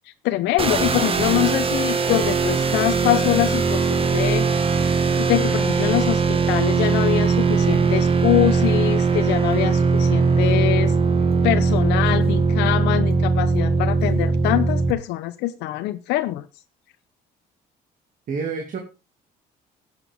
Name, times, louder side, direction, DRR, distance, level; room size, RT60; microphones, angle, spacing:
voice 1, 0.1-4.5 5.2-10.9 11.4-16.5, left 16 dB, 90° left, 10 dB, 0.7 m, -24 dB
sound 1, 0.6-14.9, right 4 dB, 35° right, 1.5 m, -20 dB
voice 2, 18.3-18.8, right 5 dB, 50° right, 4 dB, 2.3 m, -28 dB
14.0 x 9.0 x 3.5 m, 0.29 s
cardioid pair, 110°, 17 cm